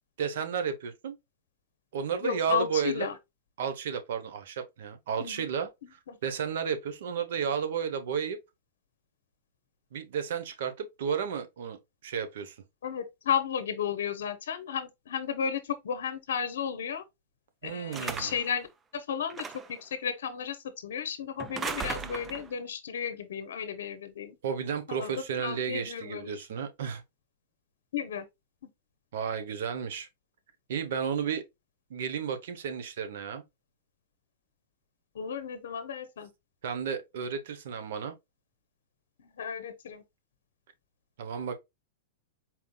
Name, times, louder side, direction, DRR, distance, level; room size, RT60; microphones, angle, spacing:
voice 1, 0.2-1.2 1.9-3.1 3.6-5.7 6.2-8.4 9.9-12.5 17.6-18.3 24.4-27.0 29.1-30.1 30.7-31.4 31.9-33.4 36.6-38.2 41.2-41.6, right 7 dB, 70° right, 0.8 m, -32 dB
voice 2, 2.2-3.2 5.2-5.5 6.1-6.2 12.8-17.0 17.6-18.7 18.9-24.4 24.9-26.4 27.9-28.3 35.1-36.3 39.2-40.0, left 8 dB, 80° left, 0.7 m, -33 dB
sound 1, 17.9-18.5 19.3-19.8 21.4-22.5, right 5 dB, 20° right, 0.4 m, -37 dB
4.3 x 3.8 x 2.2 m
hypercardioid pair, 135°, 0 cm